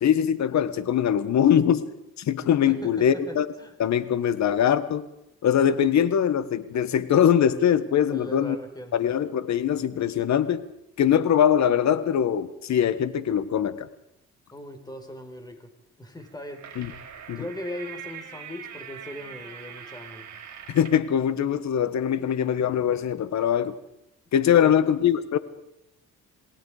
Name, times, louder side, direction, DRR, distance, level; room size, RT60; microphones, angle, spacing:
voice 1, 0.0-1.9 2.2-3.5 3.8-5.1 5.4-8.6 8.9-10.6 11.0-13.9 16.8-16.9 17.3-17.4 20.7-23.7 24.3-25.4, left 9 dB, 65° left, 14 dB, 1.6 m, -22 dB
voice 2, 2.7-3.7 8.1-9.2 14.5-15.7 16.0-17.0 17.3-20.3 24.5-24.8, left 1 dB, 15° left, 5 dB, 4.6 m, -39 dB
sound 1, 16.2-21.1, right 8 dB, 65° right, 4.6 m, -42 dB
27.5 x 19.5 x 5.0 m, 0.84 s
cardioid pair, 90°, 30 cm